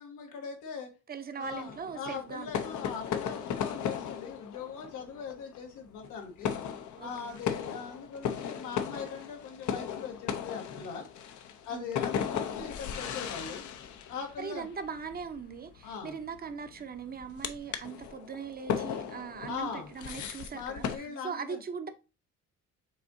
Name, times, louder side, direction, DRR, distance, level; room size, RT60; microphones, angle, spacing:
voice 1, 0.0-0.9 1.4-6.5 7.0-11.3 11.6-13.6 14.1-14.7 15.8-16.2 19.5-19.9 20.5-21.6, left 6 dB, 90° left, 1.4 m, -41 dB
voice 2, 1.1-2.5 7.0-7.3 11.7-12.0 14.4-21.9, right 6 dB, 30° right, 0.7 m, -40 dB
sound 1, 1.4-21.0, left 8 dB, 70° left, 0.7 m, -37 dB
5.7 x 3.6 x 2.6 m
cardioid pair, 90°, 30 cm